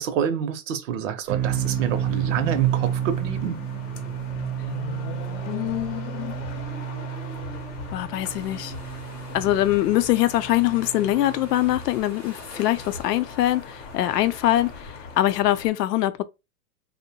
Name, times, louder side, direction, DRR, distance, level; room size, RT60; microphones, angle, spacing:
voice 1, 0.0-3.6, right 9 dB, 55° right, 0.6 m, -27 dB
sound 1, 1.3-11.8, right 10 dB, 85° right, 0.8 m, -31 dB
sound 2, 1.4-15.7, left 5 dB, 50° left, 0.7 m, -40 dB
voice 2, 5.5-6.3 7.9-8.7 9.3-16.2, left 14 dB, 80° left, 0.6 m, -23 dB
sound 3, 8.2-14.9, left 1 dB, 20° left, 0.7 m, -46 dB
2.7 x 2.1 x 2.8 m
supercardioid pair, 150°, 47 cm